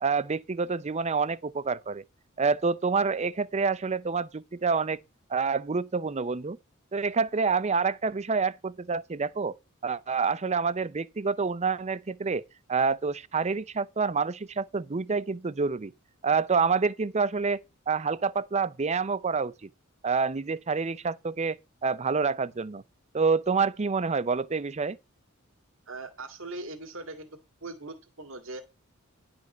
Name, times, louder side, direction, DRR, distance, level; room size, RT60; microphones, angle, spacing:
voice 1, 0.0-2.0 2.4-5.0 5.3-6.6 6.9-9.5 9.8-12.4 12.7-15.9 16.2-17.6 17.9-19.7 20.0-21.6 21.8-22.8 23.1-25.0, right 5 dB, 30° right, 0.6 m, -27 dB
voice 2, 25.9-28.6, right 2 dB, 70° right, 2.0 m, -40 dB
11.0 x 5.2 x 6.6 m
head